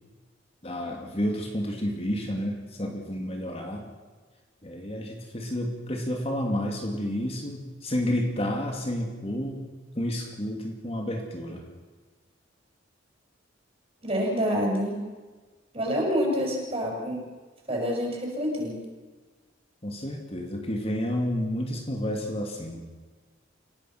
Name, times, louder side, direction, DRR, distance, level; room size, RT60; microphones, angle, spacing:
voice 1, 0.6-3.9 4.6-9.6 9.9-11.6 19.8-22.9, equal, 30° left, 2 dB, 2.7 m, -30 dB
voice 2, 14.0-15.0 15.7-17.2 17.7-18.8, equal, 30° right, -1 dB, 7.1 m, -27 dB
29.0 x 17.5 x 6.1 m, 1.4 s
head